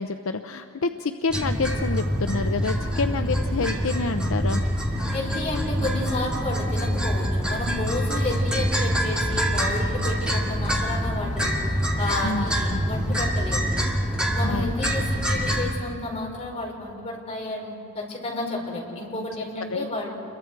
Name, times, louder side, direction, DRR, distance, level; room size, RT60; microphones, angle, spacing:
voice 1, 0.0-4.6 12.2-12.4 12.7-12.8 14.4-14.7 19.7-19.8, left 4 dB, 65° left, 8 dB, 0.6 m, -28 dB
sound 1, 1.3-15.7, equal, 5° right, 2.1 m, -25 dB
voice 2, 5.1-13.6 14.3-20.1, left 2 dB, 30° left, -2 dB, 4.6 m, -31 dB
28.5 x 22.5 x 4.6 m, 2.8 s
head